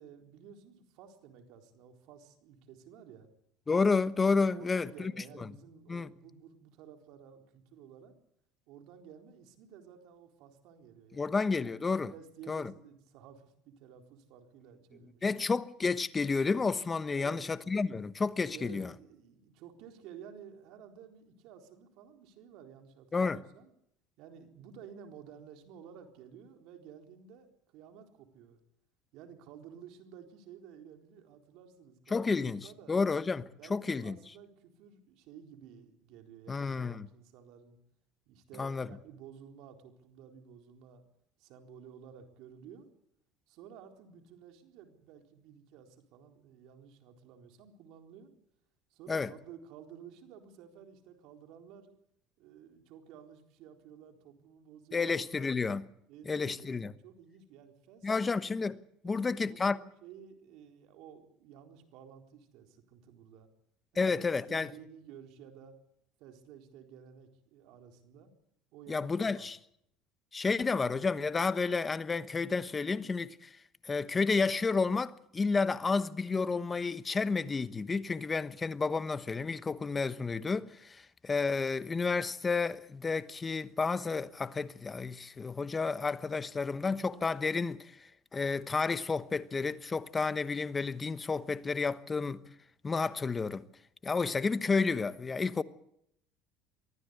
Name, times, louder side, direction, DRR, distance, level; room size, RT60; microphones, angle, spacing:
voice 1, 0.0-3.3 4.5-8.1 8.7-11.4 12.1-15.4 17.1-17.5 18.4-23.7 24.2-28.6 29.1-33.0 33.6-37.8 38.3-41.0 41.4-42.9 43.5-48.3 48.9-51.9 52.4-55.5 56.1-58.3 59.0-63.5 63.9-65.7 66.2-68.3 68.7-69.5, right 8 dB, 70° right, 4.1 m, -53 dB
voice 2, 3.7-5.1 5.4-5.5 5.9-6.1 11.1-12.1 12.5-12.7 15.2-18.9 23.1-23.4 32.1-32.6 32.9-34.2 36.5-37.1 38.6-38.9 49.1-49.3 54.9-55.8 56.3-56.9 58.0-59.8 64.0-64.7 68.9-69.6 70.3-73.5 73.8-92.4 92.8-93.6 94.0-95.6, left 4 dB, 20° left, 1.1 m, -31 dB
23.5 x 15.0 x 8.1 m
supercardioid pair, 105°, 0 cm